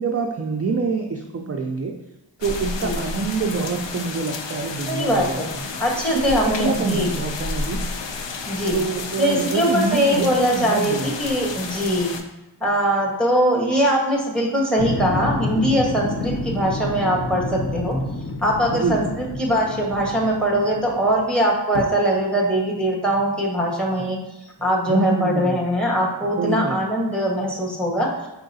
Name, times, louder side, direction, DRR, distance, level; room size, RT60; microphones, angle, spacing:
voice 1, 0.0-1.9 2.4-5.4 6.1-7.8 8.7-11.1 18.7-19.0 24.9-25.6 26.4-26.8, right 4 dB, 35° right, 2 dB, 0.4 m, -25 dB
sound 1, 2.4-12.2, left 3 dB, 80° left, 0.5 m, -31 dB
voice 2, 2.6-2.9 4.9-5.5 5.8-7.1 8.5-8.8 9.2-12.1 12.6-17.9 18.4-24.2 24.6-28.1, equal, ahead, -2 dB, 1.2 m, -21 dB
sound 2, 14.8-21.2 21.7-21.8, left 2 dB, 30° left, 0.5 m, -29 dB
4.6 x 4.3 x 2.7 m, 0.98 s
wide cardioid pair, 55°, 43 cm